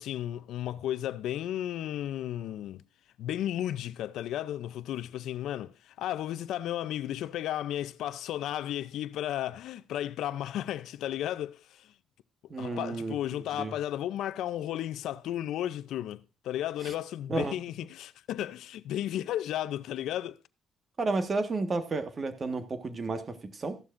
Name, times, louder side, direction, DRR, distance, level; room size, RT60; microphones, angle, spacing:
voice 1, 0.0-2.8 3.2-11.9 12.6-20.4, left 12 dB, 85° left, 0.5 m, -34 dB
voice 2, 12.5-13.1 13.6-13.7 16.8-16.9 17.3-17.5 21.0-23.8, right 3 dB, 40° right, 1.5 m, -32 dB
14.0 x 11.5 x 2.6 m
cardioid pair, 90°, 0 cm